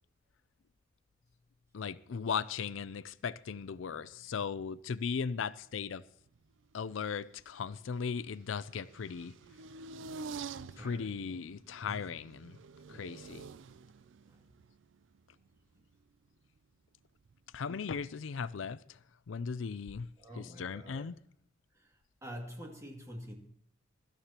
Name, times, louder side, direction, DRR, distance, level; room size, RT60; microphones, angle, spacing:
voice 1, 1.7-6.0 6.7-9.3 10.6-12.6 12.9-13.5 17.5-19.0 19.3-20.1 20.4-21.1, left 6 dB, 80° left, 0.4 m, -37 dB
sound 1, 3.7-4.7 4.9-5.9 6.2-16.6 17.2-17.6, right 4 dB, 70° right, 0.4 m, -49 dB
voice 2, 10.7-11.2 11.8-12.0 12.9-13.2 14.3-14.4 20.2-21.1 21.7-21.9 22.2-23.4, equal, 15° right, 2.4 m, -47 dB
23.0 x 13.0 x 2.9 m
head